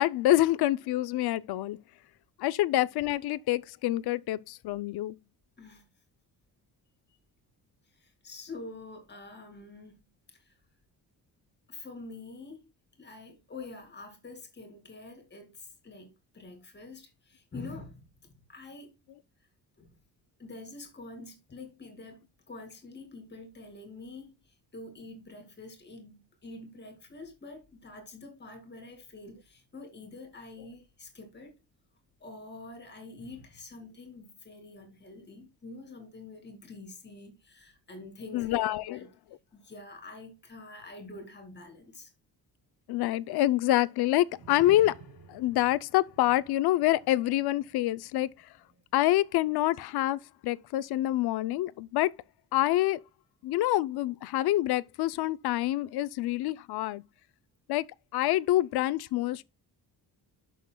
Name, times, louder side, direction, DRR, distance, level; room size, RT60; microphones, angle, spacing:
voice 1, 0.0-1.8 2.4-5.2 38.3-39.0 42.9-45.0 45.3-48.3 48.9-52.1 52.5-53.0 53.4-57.0 57.7-57.8 58.1-59.4, left 15 dB, 75° left, 0.6 m, -26 dB
voice 2, 7.9-10.0 10.3-10.5 11.7-12.6 13.0-16.1 16.3-18.9 19.8-19.9 20.4-31.5 32.2-39.1 39.5-42.1, left 3 dB, 25° left, 2.4 m, -46 dB
sound 1, 44.3-48.9 49.2-49.5 49.9-50.0, right 8 dB, 50° right, 0.9 m, -53 dB
11.0 x 6.4 x 2.2 m
cardioid pair, 170°, 38 cm